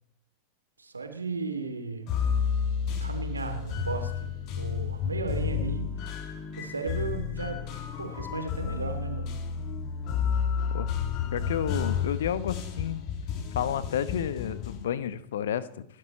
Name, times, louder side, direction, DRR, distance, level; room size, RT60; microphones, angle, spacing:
voice 1, 0.8-2.1 3.0-4.3 4.6-6.1 6.6-7.7 8.0-9.4, right 4 dB, 80° right, 6 dB, 2.7 m, -35 dB
sound 1, 2.1-14.8, left 7 dB, 40° left, 2.2 m, -31 dB
voice 2, 11.3-13.0 13.5-15.8, left 9 dB, 60° left, 16 dB, 1.0 m, -31 dB
28.0 x 11.5 x 4.3 m, 0.75 s
figure-of-eight pair, 90°, 0 cm